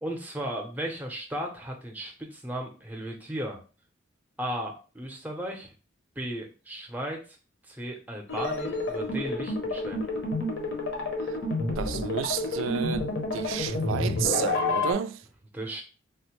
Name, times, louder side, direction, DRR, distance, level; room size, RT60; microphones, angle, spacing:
voice 1, 0.0-3.6 4.4-5.7 6.2-7.4 7.7-10.1 15.5-15.8, right 1 dB, 10° right, 0.6 m, -35 dB
sound 1, 8.3-14.9, left 2 dB, 65° left, 0.7 m, -29 dB
voice 2, 11.8-15.3, right 8 dB, 85° right, 0.3 m, -31 dB
3.5 x 2.1 x 3.0 m
head